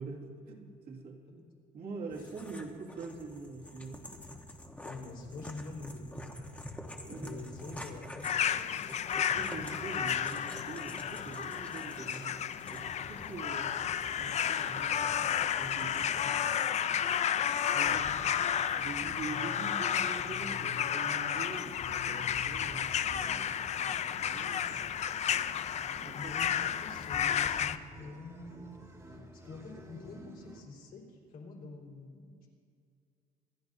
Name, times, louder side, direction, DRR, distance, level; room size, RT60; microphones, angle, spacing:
voice 1, 0.0-1.5 1.7-4.1 7.1-7.9 9.3-13.8 14.2-15.1 15.6-16.4 17.7-18.1 18.8-24.8 26.0-26.3, right 3 dB, 65° right, -1 dB, 2.2 m, -44 dB
sound 1, 2.1-16.2, left 1 dB, 10° left, 1.3 m, -47 dB
voice 2, 4.8-6.1 7.1-8.8 16.2-16.6 17.8-18.3 25.9-28.7 29.1-32.5, left 3 dB, 60° left, -2 dB, 3.8 m, -47 dB
sound 2, 8.2-27.8, left 9 dB, 40° left, 0.5 m, -32 dB
sound 3, 12.7-30.6, right 1 dB, 20° right, 1.8 m, -53 dB
26.0 x 11.5 x 2.7 m, 2.3 s
cardioid pair, 110°, 17 cm